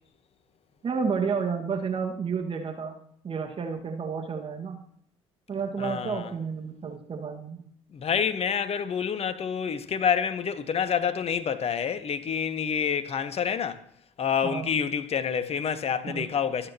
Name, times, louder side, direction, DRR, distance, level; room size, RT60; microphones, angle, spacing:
voice 1, 0.8-2.9 3.2-4.8 5.5-7.6 14.4-14.7 16.1-16.3, right 5 dB, 35° right, 1.9 m, -31 dB
voice 2, 5.8-6.3 7.9-13.8 14.2-16.7, left 7 dB, 40° left, 1.3 m, -28 dB
24.0 x 8.9 x 3.0 m
figure-of-eight pair, 55°, 15 cm